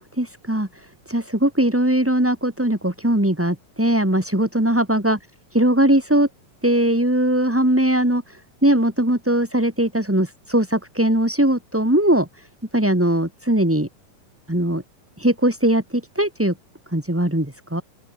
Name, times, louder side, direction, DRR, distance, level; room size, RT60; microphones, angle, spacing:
voice 1, 0.2-5.2 5.5-6.3 6.6-12.3 12.7-13.9 14.5-14.8 15.2-16.5 16.9-17.8, right 1 dB, 5° right, 1.9 m, -20 dB
open air
omnidirectional pair, 3.8 m